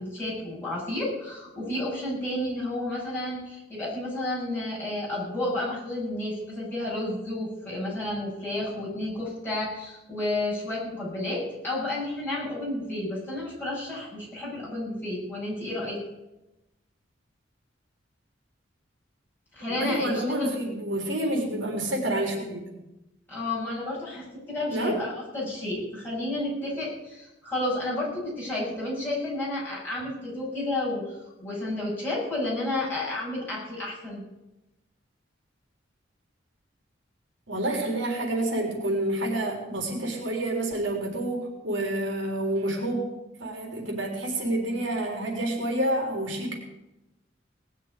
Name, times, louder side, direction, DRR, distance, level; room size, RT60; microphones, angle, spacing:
voice 1, 0.0-16.0 19.5-20.5 23.3-34.2, left 1 dB, 10° left, -7 dB, 7.8 m, -31 dB
voice 2, 19.7-22.8 24.7-25.0 37.5-43.1 43.4-46.6, right 1 dB, 80° right, 0 dB, 3.8 m, -28 dB
19.0 x 6.8 x 9.2 m, 0.96 s
head